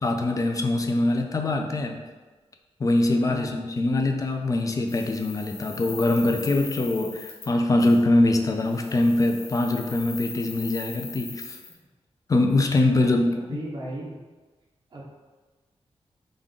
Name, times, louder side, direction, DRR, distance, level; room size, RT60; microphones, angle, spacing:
voice 1, 0.0-2.0 2.8-11.6 12.3-13.6, left 2 dB, 30° left, 4 dB, 0.3 m, -23 dB
sound 1, 4.9-7.5 7.8-8.0 8.6-11.7, left 4 dB, 85° left, 0.6 m, -40 dB
voice 2, 13.5-14.2 14.9-15.0, right 2 dB, 40° right, -5 dB, 0.7 m, -35 dB
3.6 x 2.5 x 3.6 m, 1.3 s
wide cardioid pair, 150°, 11 cm